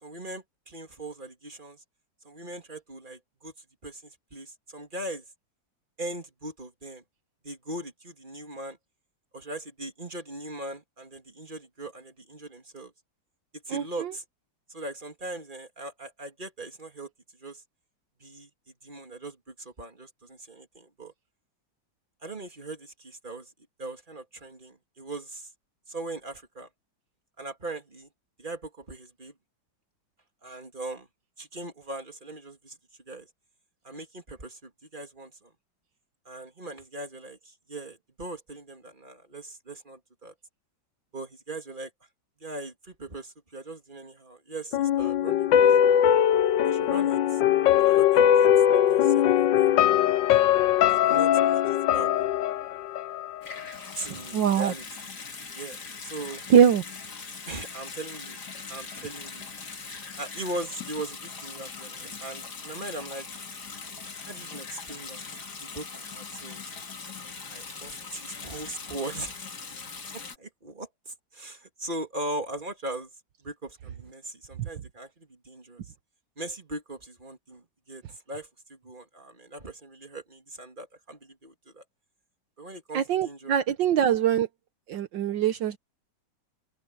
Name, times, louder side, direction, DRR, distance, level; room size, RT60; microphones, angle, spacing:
voice 1, 0.0-1.8 2.2-3.5 3.8-5.2 6.0-7.0 7.4-8.8 9.3-12.9 13.7-14.2 14.7-17.1 17.4-17.6 18.2-18.5 18.8-21.1 22.2-23.5 23.8-25.5 25.9-26.7 27.4-28.1 28.4-29.3 30.4-31.1 31.4-32.8 33.1-33.3 33.8-35.5 36.2-40.3 41.1-41.9 42.4-45.7 46.6-47.4 47.8-48.5 48.7-49.8 50.9-52.1 53.9-54.9 55.5-56.4 57.5-58.4 58.7-59.5 60.2-63.4 64.3-65.2 65.6-66.6 67.5-69.4 70.1-73.1 73.4-75.9 76.4-78.0 78.3-81.8 82.6-83.9, right 2 dB, 25° right, 3.1 m, -40 dB
voice 2, 13.7-14.1 54.1-54.7 56.5-56.8 82.9-84.5 84.9-85.8, right 8 dB, 75° right, 1.6 m, -23 dB
sound 1, 44.7-53.7 54.0-54.1, left 10 dB, 75° left, 1.6 m, -21 dB
Water tap faucet / Sink (filling or washing) / Bathtub (filling or washing), 53.4-70.4, left 5 dB, 55° left, 3.1 m, -41 dB
open air
omnidirectional pair, 2.0 m